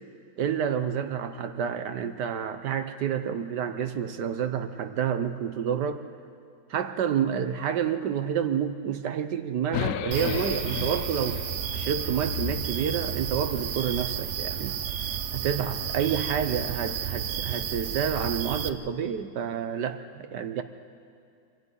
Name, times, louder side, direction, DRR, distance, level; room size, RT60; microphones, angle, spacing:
voice 1, 0.4-6.0 6.7-11.4 11.7-14.8 15.3-20.6, right 8 dB, 65° right, 9 dB, 1.3 m, -29 dB
sound 1, 9.7-14.0, left 10 dB, 65° left, 0.9 m, -35 dB
sound 2, 10.1-18.7, right 9 dB, 80° right, 0.6 m, -32 dB
24.0 x 12.5 x 9.6 m, 2.4 s
omnidirectional pair, 2.1 m